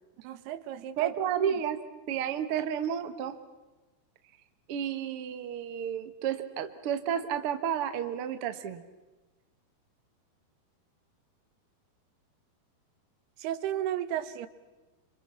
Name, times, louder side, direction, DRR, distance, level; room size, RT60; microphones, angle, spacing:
voice 1, 0.2-1.5 13.4-14.5, right 11 dB, 90° right, 13 dB, 3.1 m, -34 dB
voice 2, 1.0-1.8 2.1-3.4 4.7-8.8, right 9 dB, 55° right, 10 dB, 1.6 m, -31 dB
28.0 x 26.0 x 5.8 m, 1.2 s
omnidirectional pair, 4.5 m